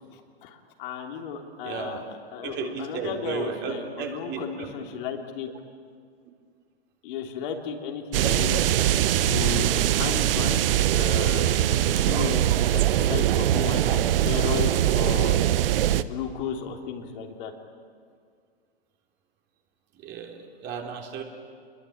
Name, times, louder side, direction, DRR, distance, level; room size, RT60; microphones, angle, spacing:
voice 1, 0.4-2.0 2.3-5.5 7.0-8.7 9.2-10.7 10.9-11.8 12.0-12.5 12.7-12.8 13.1-15.4 16.0-17.5, left 7 dB, 55° left, 3 dB, 3.4 m, -34 dB
voice 2, 1.6-2.1 2.4-4.7 13.5-13.6 19.9-21.2, right 6 dB, 35° right, 2 dB, 3.7 m, -34 dB
sound 1, 8.1-16.0, right 12 dB, 60° right, 1.0 m, -22 dB
27.5 x 21.5 x 8.7 m, 2.1 s
hypercardioid pair, 110°, 32 cm